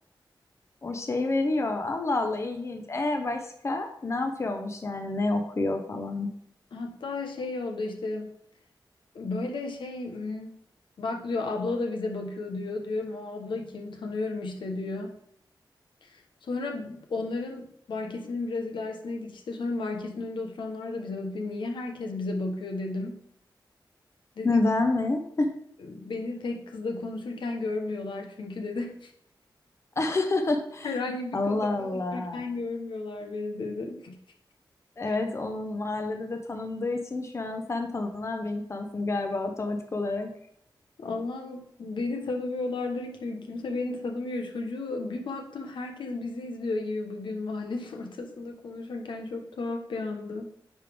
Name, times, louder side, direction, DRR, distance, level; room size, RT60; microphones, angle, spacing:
voice 1, 0.8-6.3 24.4-25.5 30.0-30.9 31.3-32.4 35.0-40.3, left 2 dB, 35° left, 4 dB, 0.8 m, -28 dB
voice 2, 6.7-8.3 9.1-10.6 11.0-15.2 16.0-23.2 24.4-24.6 25.8-29.1 30.8-34.2 35.1-35.2 41.0-50.5, left 3 dB, 80° left, 3 dB, 1.0 m, -33 dB
9.9 x 3.4 x 3.5 m, 0.71 s
wide cardioid pair, 105°, 8 cm